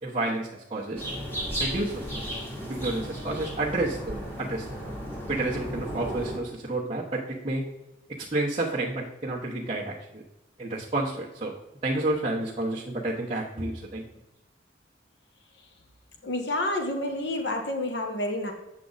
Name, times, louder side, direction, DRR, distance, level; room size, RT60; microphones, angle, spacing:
voice 1, 0.0-1.1 1.6-2.1 2.7-4.6 5.3-7.6 8.3-10.2 10.6-11.5 11.8-14.0, right 2 dB, 30° right, -7 dB, 1.0 m, -30 dB
sound 1, 1.0-6.4, equal, 15° left, 1.9 m, -34 dB
voice 2, 16.2-18.5, left 1 dB, 65° left, 3 dB, 1.2 m, -29 dB
8.4 x 6.3 x 4.0 m, 0.93 s
head